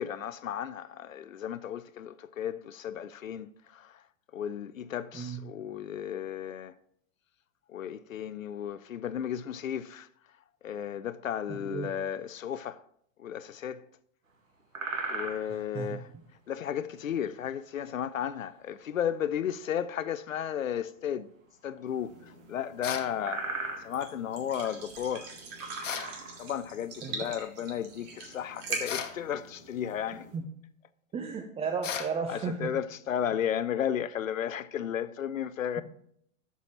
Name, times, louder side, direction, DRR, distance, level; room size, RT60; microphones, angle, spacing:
voice 1, 0.0-3.9 4.3-6.7 7.7-10.1 10.6-12.8 13.2-13.8 15.1-16.1 16.5-21.3 21.6-22.1 22.5-25.3 26.4-30.3 32.3-35.8, left 9 dB, 85° left, 0.5 m, -34 dB
voice 2, 11.5-11.9 15.5-16.0 27.0-27.1 30.3-30.4 31.1-32.7, right 6 dB, 15° right, 0.6 m, -34 dB
sound 1, 14.6-15.6 18.6-18.7 22.2-22.3 22.7-22.8 23.2-24.0 24.7-24.8 25.5-26.5, right 3 dB, 85° right, 1.6 m, -36 dB
sound 2, 21.9-30.4, right 4 dB, 40° right, 2.7 m, -43 dB
sound 3, 22.8-23.1 25.8-26.1 28.8-29.2 31.8-32.1, left 7 dB, 70° left, 1.1 m, -35 dB
13.0 x 6.9 x 3.0 m
figure-of-eight pair, 95°, 38 cm